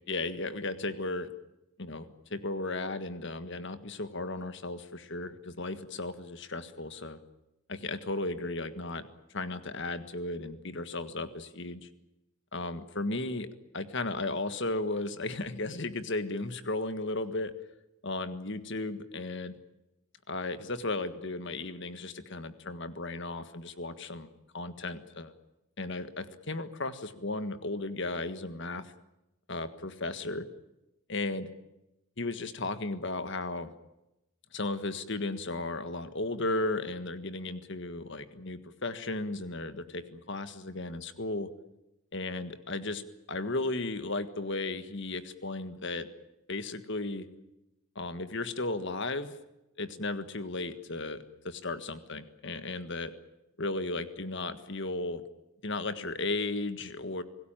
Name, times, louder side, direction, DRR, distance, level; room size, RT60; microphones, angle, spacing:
voice 1, 0.1-1.3 1.8-7.2 7.7-9.1 9.3-11.9 12.5-13.5 13.7-17.5 18.0-19.6 20.3-24.3 24.5-25.3 25.8-28.9 29.5-30.5 31.1-31.5 32.2-33.7 34.5-41.5 42.1-43.0 43.3-46.1 46.5-47.3 47.9-49.4 49.8-53.1 53.6-55.2 55.6-57.2, left 2 dB, 55° left, 11 dB, 1.6 m, -35 dB
26.0 x 18.0 x 8.9 m, 0.93 s
head